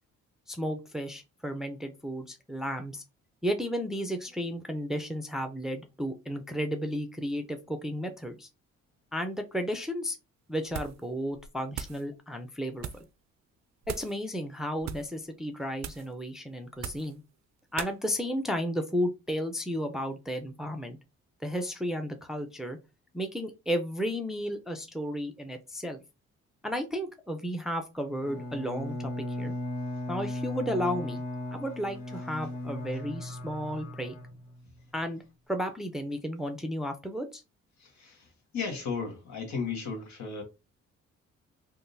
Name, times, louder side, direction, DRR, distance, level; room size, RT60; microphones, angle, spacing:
voice 1, 0.5-3.0 3.4-8.5 9.1-10.2 10.5-12.9 13.9-17.2 17.7-21.0 21.4-22.8 23.1-26.0 26.6-29.1 29.4-29.5 30.1-31.2 31.5-34.2 34.9-35.2 35.5-37.4, equal, ahead, 0.6 m, -33 dB
sound 1, 10.7-11.1 11.3-12.0 12.8-13.1 13.8-14.2 14.8-15.1 15.8-16.1 16.7-17.2 17.8-18.0, right 9 dB, 65° right, 0.4 m, -39 dB
Bowed string instrument, 28.2-34.8, left 1 dB, 85° left, 1.5 m, -37 dB
voice 2, 37.8-38.2 38.5-40.4, left 5 dB, 65° left, 1.4 m, -34 dB
3.6 x 2.5 x 2.7 m
cardioid pair, 90°, 30 cm